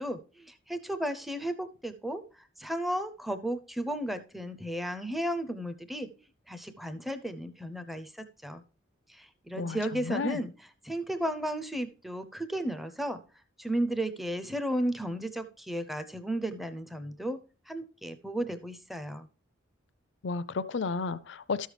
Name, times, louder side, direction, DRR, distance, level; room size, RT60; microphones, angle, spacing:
voice 1, 0.0-8.6 9.1-13.2 13.6-17.4 17.7-19.3, right 1 dB, ahead, 0.5 m, -34 dB
voice 2, 20.2-21.7, left 4 dB, 60° left, 0.5 m, -32 dB
13.0 x 6.4 x 3.3 m
head